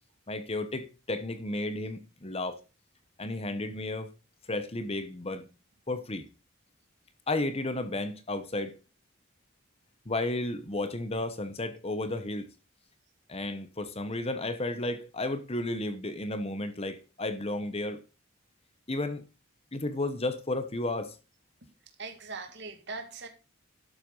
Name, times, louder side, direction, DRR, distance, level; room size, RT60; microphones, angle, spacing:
voice 1, 0.3-2.6 3.2-4.1 4.5-5.5 5.9-6.2 7.3-8.8 10.0-12.5 13.3-18.0 18.9-19.3 19.7-21.2, left 2 dB, 30° left, 1.0 m, -33 dB
voice 2, 22.0-23.3, right 4 dB, 55° right, 2.0 m, -40 dB
12.0 x 7.9 x 4.0 m
head